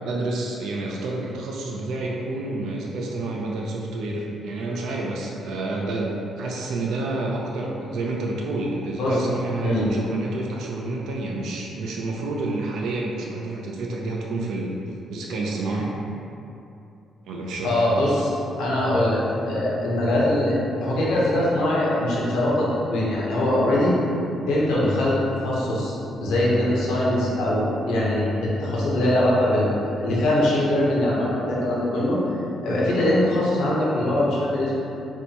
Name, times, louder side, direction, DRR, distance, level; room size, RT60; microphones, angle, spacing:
voice 1, 0.0-14.8 15.1-15.9 17.2-17.8, right 2 dB, 80° right, -2 dB, 0.3 m, -29 dB
voice 2, 17.6-18.3 18.6-19.2 19.5-23.9 24.5-25.1 25.4-25.9 26.2-32.2 32.6-34.7, left 1 dB, 85° left, -6 dB, 0.7 m, -22 dB
4.1 x 2.2 x 2.8 m, 2.8 s
cardioid pair, 90°, 0 cm